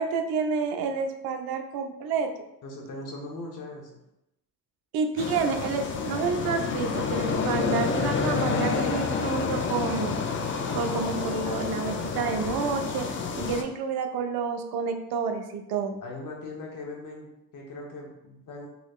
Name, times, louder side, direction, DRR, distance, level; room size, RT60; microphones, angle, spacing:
voice 1, 0.0-2.3 4.9-10.2 10.7-13.1 13.4-16.0, right 5 dB, 80° right, 6 dB, 0.5 m, -29 dB
voice 2, 2.6-4.0 16.0-18.7, left 2 dB, 55° left, 0 dB, 1.0 m, -40 dB
sound 1, 5.2-13.6, left 5 dB, 35° left, 0.4 m, -29 dB
3.9 x 3.0 x 2.4 m, 0.87 s
cardioid pair, 110°, 36 cm